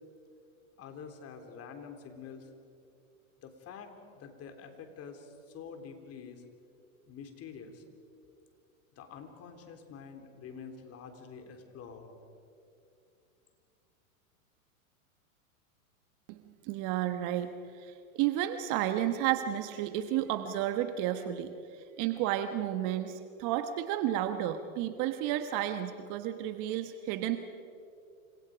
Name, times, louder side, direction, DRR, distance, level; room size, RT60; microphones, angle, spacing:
voice 1, 0.8-2.5 3.4-6.4 7.1-7.8 8.9-12.2, left 6 dB, 35° left, 5 dB, 3.5 m, -47 dB
voice 2, 16.3-27.4, right 12 dB, 45° right, 9 dB, 1.3 m, -32 dB
29.0 x 26.5 x 5.1 m, 2.5 s
hypercardioid pair, 115°, 42 cm